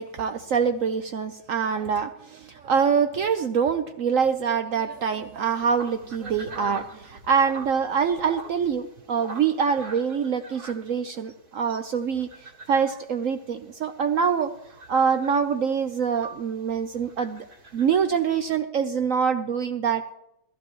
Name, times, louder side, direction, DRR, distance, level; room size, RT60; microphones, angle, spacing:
voice 1, 0.0-12.3 12.7-14.5 14.9-17.5 17.7-20.1, right 6 dB, 65° right, 9 dB, 0.8 m, -25 dB
sound 1, 5.5-18.6, right 2 dB, 50° right, 2.2 m, -45 dB
14.5 x 14.0 x 3.1 m, 0.79 s
omnidirectional pair, 2.0 m